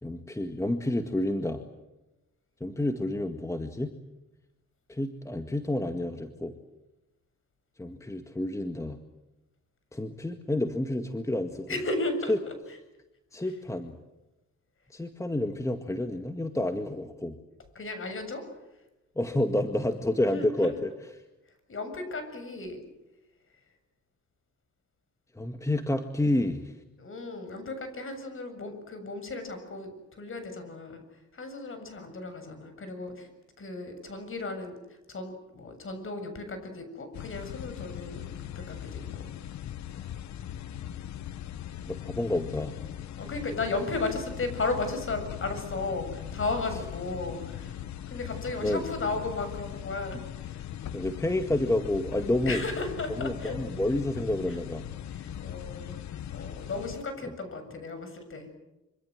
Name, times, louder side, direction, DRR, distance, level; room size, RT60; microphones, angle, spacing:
voice 1, 0.0-1.6 2.6-3.9 4.9-6.6 7.8-9.0 9.9-11.7 12.3-12.4 13.3-14.0 14.9-17.4 19.2-20.9 25.4-26.7 41.9-42.8 48.6-48.8 50.9-52.6 53.2-54.8, left 1 dB, 10° left, 7 dB, 1.9 m, -29 dB
voice 2, 11.7-12.5 13.4-13.5 17.8-18.4 20.3-20.7 21.7-22.8 27.0-31.0 31.3-33.3 33.6-39.3 43.2-50.7 52.5-53.6 54.5-54.6 55.1-55.9 56.3-58.5, left 3 dB, 45° left, 8 dB, 7.5 m, -35 dB
sound 1, 37.1-57.0, left 11 dB, 65° left, 1.1 m, -40 dB
25.5 x 25.5 x 7.8 m, 0.98 s
cardioid pair, 90°, 30 cm